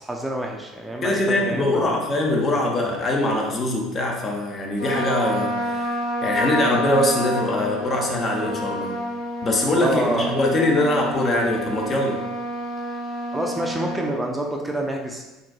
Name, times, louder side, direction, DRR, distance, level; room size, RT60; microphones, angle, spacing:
voice 1, 0.0-2.0 9.8-10.3 13.3-15.2, right 1 dB, 10° right, 0 dB, 0.4 m, -27 dB
voice 2, 1.0-9.0 9.4-12.2, left 1 dB, 40° left, 0 dB, 0.7 m, -23 dB
Trumpet, 4.8-14.1, equal, 90° left, 0.8 m, -29 dB
3.8 x 2.6 x 2.3 m, 1.1 s
hypercardioid pair, 70°, 0 cm